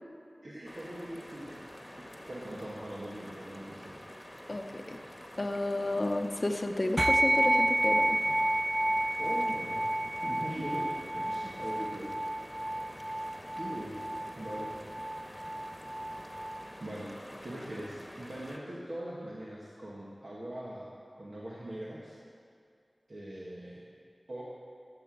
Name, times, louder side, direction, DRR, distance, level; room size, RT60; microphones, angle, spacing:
voice 1, 0.4-1.6 1.9-3.9 8.3-8.4 9.2-9.8 10.2-10.9 11.1-12.1 13.6-14.0 14.3-14.7 16.8-20.9 21.2-22.2 23.1-23.8 24.3-24.4, right 1 dB, 60° right, -6 dB, 1.8 m, -41 dB
sound 1, 0.6-18.6, equal, 10° left, 1.4 m, -48 dB
voice 2, 4.5-5.0 5.4-8.2, left 2 dB, 45° left, 5 dB, 0.8 m, -32 dB
sound 2, 7.0-16.7, right 1 dB, 25° right, 0.3 m, -30 dB
13.5 x 8.2 x 7.8 m, 2.4 s
wide cardioid pair, 60°, 0 cm